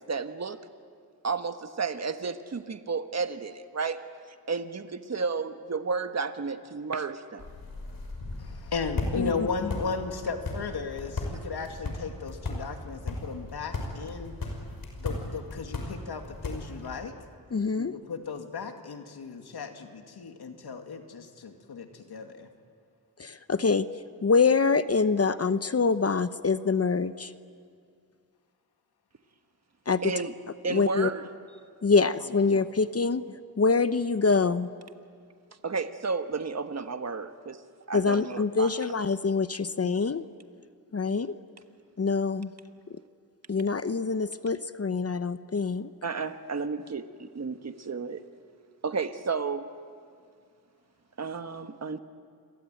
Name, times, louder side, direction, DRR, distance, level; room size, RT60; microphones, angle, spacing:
voice 1, 0.1-0.6 1.2-4.0 4.5-7.5 30.0-30.3 30.6-31.2 35.6-37.6 37.9-38.7 46.0-48.2 48.8-49.7 51.2-52.0, right 4 dB, 45° right, 8 dB, 1.4 m, -32 dB
sound 1, 7.4-16.9, left 2 dB, 65° left, 5.7 m, -36 dB
voice 2, 8.4-14.3 15.0-17.1 17.7-22.5, left 5 dB, 85° left, 5 dB, 2.4 m, -35 dB
voice 3, 9.2-9.7 17.5-17.9 23.2-23.9 24.2-27.3 29.9-30.1 30.7-31.1 31.8-33.2 33.6-34.7 37.9-40.2 40.9-41.3 42.0-42.5 43.5-45.9, left 4 dB, 40° left, 12 dB, 0.9 m, -25 dB
28.5 x 22.5 x 9.2 m, 2.3 s
cardioid pair, 70°, 38 cm